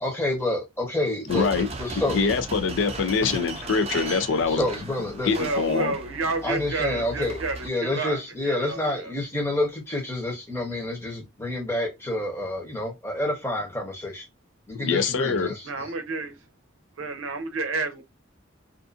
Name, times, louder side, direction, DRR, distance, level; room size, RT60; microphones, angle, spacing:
voice 1, 0.0-1.5 1.8-2.3 4.1-4.2 4.5-5.4 6.4-14.3 14.7-15.9, left 1 dB, 15° left, 0.8 m, -28 dB
voice 2, 1.3-1.7 2.1-4.6 5.2-5.9 14.8-15.5, left 5 dB, 70° left, 0.5 m, -24 dB
sound 1, 1.3-7.7, right 3 dB, 30° right, 0.4 m, -37 dB
voice 3, 5.3-9.1 15.6-16.4 17.0-18.0, right 3 dB, 85° right, 0.6 m, -30 dB
2.5 x 2.4 x 2.5 m
head